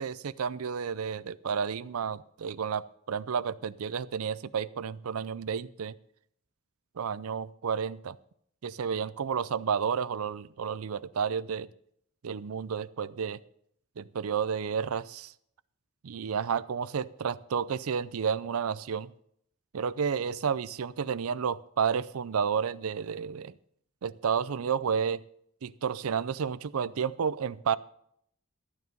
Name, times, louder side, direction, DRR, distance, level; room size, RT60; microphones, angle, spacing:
voice 1, 0.0-5.9 7.0-8.2 8.6-11.7 12.2-13.4 14.0-15.3 16.0-19.1 19.7-23.5 24.0-25.2 25.6-27.8, right 6 dB, 80° right, 18 dB, 0.5 m, -31 dB
13.0 x 9.4 x 5.3 m, 0.69 s
head